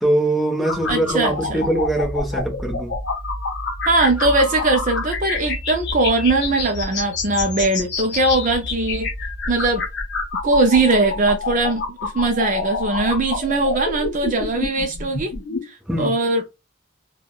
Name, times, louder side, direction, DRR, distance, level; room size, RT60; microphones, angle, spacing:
voice 1, 0.0-3.0 15.9-16.1, right 1 dB, ahead, 0.9 m, -22 dB
sound 1, 0.6-15.6, left 3 dB, 50° left, 0.8 m, -28 dB
voice 2, 0.9-1.7 3.9-9.1 9.5-9.8 10.4-15.3 15.6-16.4, right 2 dB, 35° right, 0.4 m, -20 dB
3.5 x 2.2 x 2.2 m
head